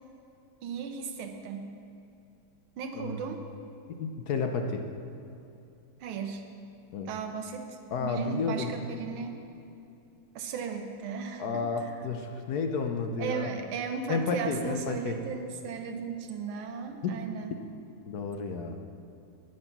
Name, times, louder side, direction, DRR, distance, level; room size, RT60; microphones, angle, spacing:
voice 1, 0.6-1.7 2.8-3.4 6.0-6.4 7.1-9.4 10.3-12.1 13.2-17.5, right 6 dB, 75° right, 4 dB, 1.8 m, -36 dB
voice 2, 2.9-3.4 4.0-4.8 6.9-7.1 7.9-8.7 11.4-13.5 14.1-15.2 17.0-17.2 18.1-18.8, left 4 dB, 65° left, 5 dB, 1.0 m, -31 dB
11.0 x 9.1 x 5.9 m, 2.7 s
omnidirectional pair, 2.4 m